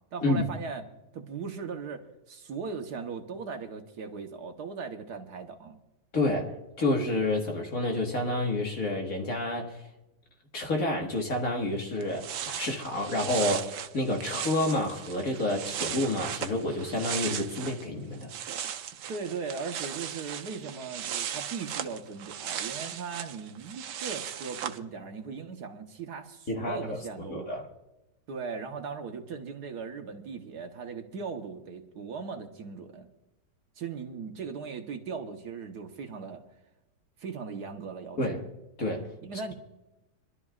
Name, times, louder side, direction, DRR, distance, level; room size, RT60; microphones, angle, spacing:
voice 1, 0.1-0.8 1.1-5.8 19.1-27.5 28.3-33.1 33.8-36.4 37.2-38.2 39.2-39.5, right 5 dB, 70° right, 1.6 m, -38 dB
voice 2, 6.1-9.8 10.5-18.3 26.5-27.0 27.3-27.7 38.2-38.4 38.8-39.1, left 1 dB, 55° left, 1.9 m, -29 dB
sound 1, 11.7-11.8 12.0-17.9 18.1-24.8, right 9 dB, 90° right, 1.4 m, -37 dB
26.0 x 12.0 x 2.4 m
omnidirectional pair, 1.8 m